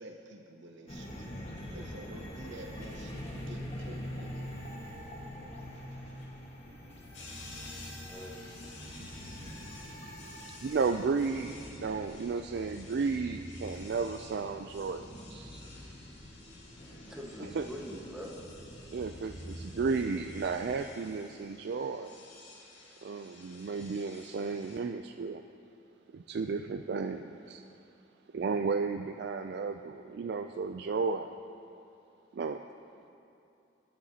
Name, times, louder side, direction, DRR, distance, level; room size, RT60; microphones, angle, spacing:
voice 1, 0.0-4.5, right 1 dB, 75° right, 2 dB, 1.0 m, -49 dB
sound 1, 0.9-20.7, equal, 35° left, 1.5 m, -45 dB
sound 2, 7.1-24.8, left 2 dB, 70° left, 2.0 m, -53 dB
voice 2, 7.4-8.4 15.5-15.7 16.0-16.1 17.1-18.3, equal, 5° right, -3 dB, 1.4 m, -45 dB
voice 3, 10.6-15.5 17.6-17.7 18.9-22.2 23.0-25.4 26.1-27.6 28.3-31.3 32.3-32.6, right 4 dB, 60° right, 6 dB, 0.3 m, -33 dB
21.5 x 10.0 x 2.9 m, 2.7 s
head